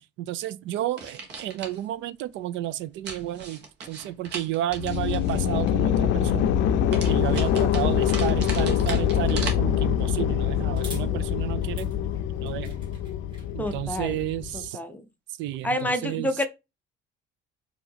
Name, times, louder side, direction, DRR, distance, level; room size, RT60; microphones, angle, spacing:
voice 1, 0.2-6.7 7.1-11.9 12.4-12.8 13.5-14.8 15.4-16.3, right 14 dB, 85° right, 0.4 m, -31 dB
sound 1, 1.0-1.8 3.0-5.7 6.9-9.5, right 4 dB, 65° right, 1.3 m, -38 dB
sound 2, 4.7-14.7, left 10 dB, 75° left, 0.4 m, -24 dB
sound 3, 7.3-7.4 8.9-9.5 10.7-11.1 11.6-13.8, right 2 dB, 25° right, 2.2 m, -46 dB
voice 2, 13.6-14.2 14.7-15.0 15.6-16.5, left 1 dB, 10° left, 0.5 m, -28 dB
4.9 x 2.7 x 2.7 m
cardioid pair, 165°, 19 cm